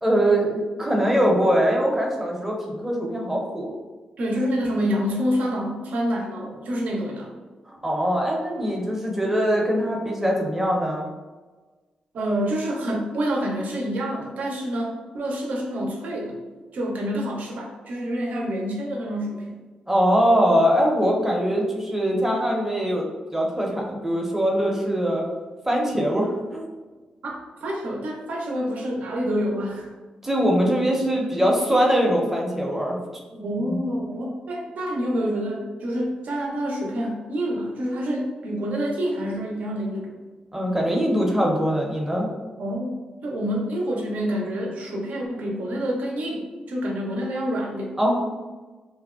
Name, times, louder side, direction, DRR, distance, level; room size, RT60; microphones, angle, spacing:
voice 1, 0.0-3.7 7.7-11.1 19.9-23.0 23.3-25.3 25.7-26.7 30.2-33.0 33.7-33.8 40.5-42.3 48.0-48.1, equal, 10° right, -1 dB, 0.6 m, -22 dB
voice 2, 4.2-7.3 12.1-16.4 16.7-19.6 27.2-29.9 33.3-40.1 42.6-47.9, equal, 70° right, -1 dB, 0.6 m, -27 dB
2.6 x 2.1 x 2.3 m, 1.3 s
cardioid pair, 60°, 3 cm